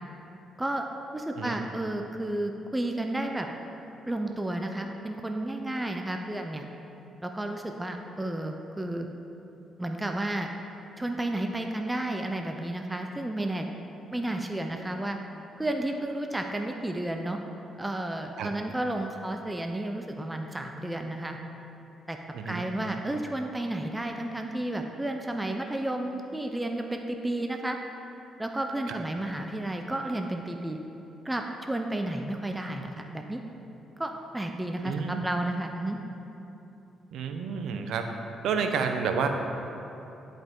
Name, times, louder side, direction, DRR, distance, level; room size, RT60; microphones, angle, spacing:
voice 1, 1.1-3.5 4.1-6.6 7.2-9.1 9.8-10.5 11.0-13.7 14.1-15.2 15.6-17.4 17.8-21.4 22.1-22.2 22.4-27.8 28.4-30.8 31.2-33.4 34.0-36.0, right 1 dB, 10° right, 3 dB, 0.5 m, -32 dB
voice 2, 22.3-22.7 28.9-29.0 34.8-35.2 37.1-38.0 38.4-39.3, right 6 dB, 80° right, 5 dB, 0.6 m, -29 dB
11.0 x 5.3 x 3.7 m, 3.0 s
cardioid pair, 90°, 0 cm